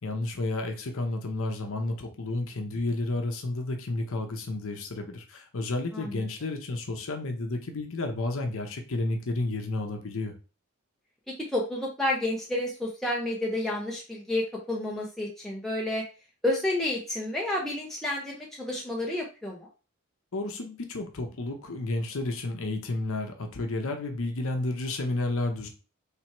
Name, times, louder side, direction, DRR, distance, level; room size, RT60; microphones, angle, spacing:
voice 1, 0.0-10.3 20.3-25.7, left 2 dB, 65° left, 4 dB, 0.7 m, -31 dB
voice 2, 11.3-16.0 16.4-19.7, left 1 dB, ahead, -3 dB, 0.6 m, -30 dB
3.3 x 3.0 x 4.4 m, 0.34 s
head